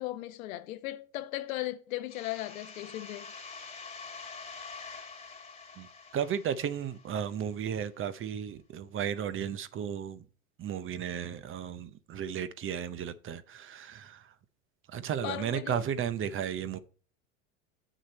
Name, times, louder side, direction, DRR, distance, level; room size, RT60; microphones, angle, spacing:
voice 1, 0.0-3.3 15.2-15.9, left 15 dB, 75° left, 1.0 m, -37 dB
sound 1, 2.1-7.6, left 4 dB, 15° left, 1.6 m, -46 dB
voice 2, 5.8-10.2 10.6-14.3 14.9-16.8, right 8 dB, 30° right, 0.7 m, -34 dB
8.1 x 6.3 x 4.3 m
hypercardioid pair, 100°, 42 cm